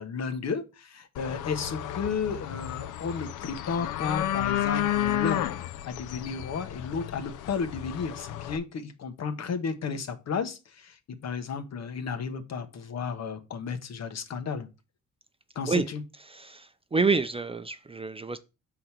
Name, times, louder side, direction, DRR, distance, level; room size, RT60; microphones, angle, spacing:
voice 1, 0.0-5.4 5.8-14.7 15.5-16.0, left 5 dB, 60° left, 1.3 m, -33 dB
sound 1, 1.1-8.6, left 12 dB, 85° left, 0.6 m, -32 dB
voice 2, 16.2-18.4, right 4 dB, 20° right, 0.5 m, -28 dB
6.3 x 3.9 x 5.8 m
cardioid pair, 90°, 30 cm